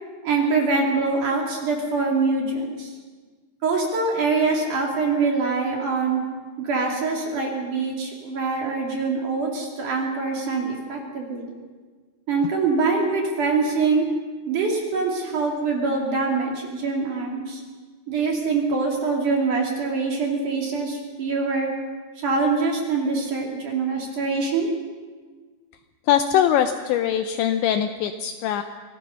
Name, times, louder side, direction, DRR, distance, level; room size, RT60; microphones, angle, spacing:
voice 1, 0.2-2.9 3.6-6.2 6.6-11.5 12.3-14.1 14.5-17.6 18.1-21.7 22.2-24.7, right 4 dB, 45° right, -1 dB, 3.4 m, -24 dB
voice 2, 26.1-28.6, left 10 dB, 80° left, 7 dB, 2.7 m, -22 dB
25.5 x 18.0 x 5.6 m, 1.4 s
omnidirectional pair, 5.8 m